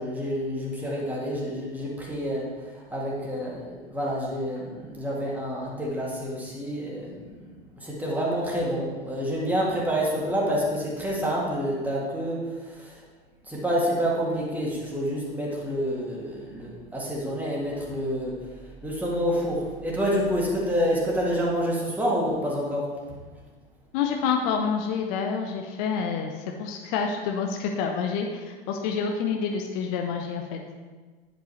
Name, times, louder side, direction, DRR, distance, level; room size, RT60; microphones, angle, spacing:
voice 1, 0.0-13.0 13.4-18.3 18.8-22.9, equal, 5° right, -4 dB, 2.0 m, -28 dB
voice 2, 23.9-26.3 26.6-30.6, left 6 dB, 40° left, 2 dB, 0.7 m, -28 dB
10.0 x 5.4 x 3.2 m, 1.4 s
figure-of-eight pair, 90°, 30 cm